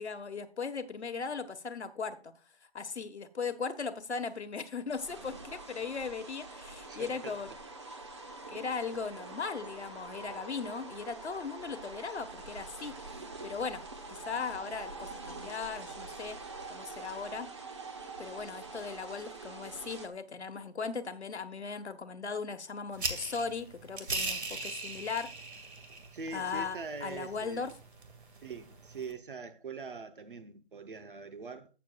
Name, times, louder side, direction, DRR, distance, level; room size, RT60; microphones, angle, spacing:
voice 1, 0.0-2.3 2.7-7.5 8.5-13.0 13.4-13.8 14.1-16.4 16.7-17.5 18.0-25.3 26.3-27.7, left 5 dB, 80° left, 1.4 m, -38 dB
sound 1, 4.9-20.1, right 3 dB, 25° right, 1.0 m, -45 dB
voice 2, 6.9-7.4 26.1-27.7 28.4-31.7, right 4 dB, 50° right, 0.9 m, -43 dB
sound 2, 22.9-29.1, right 3 dB, 75° right, 2.2 m, -40 dB
14.5 x 7.6 x 2.4 m
hypercardioid pair, 170°, 33 cm